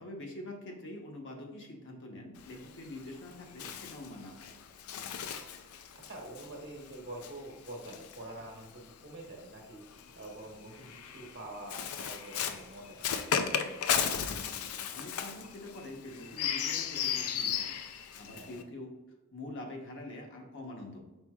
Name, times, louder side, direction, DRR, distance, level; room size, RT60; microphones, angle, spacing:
voice 1, 0.0-4.5 14.9-17.8 18.1-18.9 19.3-21.0, left 1 dB, 60° left, 1 dB, 0.8 m, -45 dB
Bird, 2.4-8.9 9.8-18.6, left 8 dB, 85° left, 0.4 m, -36 dB
voice 2, 5.2-9.8 10.1-13.3 18.3-18.6, right 1 dB, 55° right, 0 dB, 1.1 m, -46 dB
4.4 x 4.4 x 2.3 m, 1.1 s
head